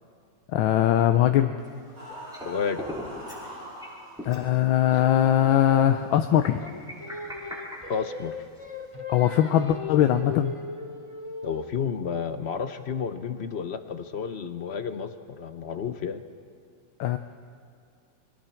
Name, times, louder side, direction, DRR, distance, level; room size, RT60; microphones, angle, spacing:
voice 1, 0.5-1.5 4.2-6.6 9.1-10.5 17.0-17.2, left 11 dB, 90° left, 7 dB, 1.5 m, -21 dB
sound 1, 1.6-2.5 2.7-3.5 3.8-3.9 4.2-4.5 5.0-5.1 6.4-8.5, equal, ahead, 5.2 m, -39 dB
sound 2, 1.9-4.2, equal, 80° right, 8.1 m, -42 dB
voice 2, 2.4-2.9 4.9-5.0 7.9-8.3 11.4-16.2, left 6 dB, 55° left, 9 dB, 0.7 m, -31 dB
Singing, 6.6-11.8, left 3 dB, 20° left, 0.8 m, -38 dB
29.5 x 23.5 x 4.5 m, 2.4 s
omnidirectional pair, 2.1 m